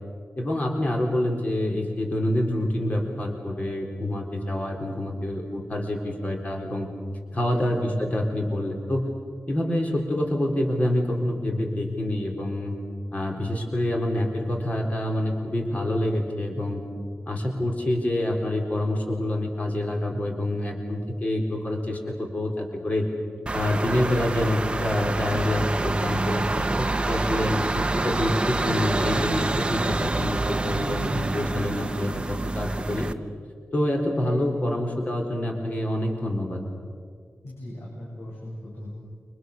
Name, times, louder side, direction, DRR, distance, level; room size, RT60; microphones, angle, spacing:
voice 1, 0.4-6.9 7.3-9.1 9.5-12.7 13.1-16.8 17.3-23.1 23.5-33.1 33.7-36.6, left 1 dB, 35° left, 1 dB, 4.0 m, -27 dB
voice 2, 7.3-7.7 32.6-32.9 37.4-38.9, left 1 dB, 75° left, -5 dB, 7.7 m, -39 dB
sound 1, 23.5-33.1, right 2 dB, 20° right, 0.9 m, -27 dB
29.5 x 26.0 x 6.6 m, 2.1 s
wide cardioid pair, 135°, 4 cm